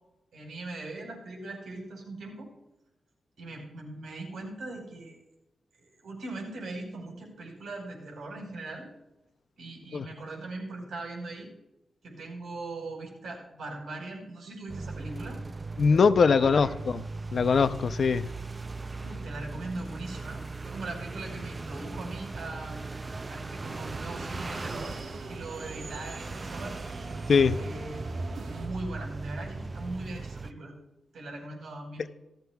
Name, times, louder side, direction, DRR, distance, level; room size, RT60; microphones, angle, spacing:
voice 1, 0.3-2.5 3.4-5.2 5.8-8.9 9.6-11.5 12.0-15.4 16.4-16.7 19.0-22.8 23.3-25.0 25.3-26.7 27.5-28.0 28.4-30.7 31.1-32.1, right 2 dB, 90° right, 4.7 m, -40 dB
sound 1, 14.7-30.5, right 3 dB, 25° right, 0.4 m, -38 dB
voice 2, 15.8-16.7 17.3-18.3 27.3-27.6, left 5 dB, 55° left, 0.6 m, -21 dB
sound 2, 23.6-28.7, right 4 dB, 70° right, 1.4 m, -42 dB
18.0 x 14.0 x 2.4 m
wide cardioid pair, 125°, 0 cm